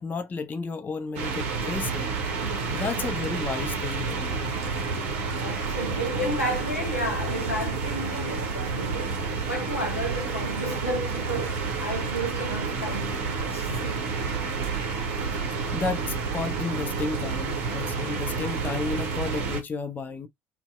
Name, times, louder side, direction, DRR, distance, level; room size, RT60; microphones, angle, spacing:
voice 1, 0.0-2.1 2.7-4.6 15.3-20.3, left 4 dB, 25° left, 0.5 m, -32 dB
sound 1, 1.2-19.6, right 4 dB, 65° right, 0.7 m, -30 dB
voice 2, 2.4-2.9 5.2-9.2 9.5-14.0, equal, 85° left, 0.7 m, -32 dB
2.6 x 2.1 x 2.2 m
figure-of-eight pair, 55°, 7 cm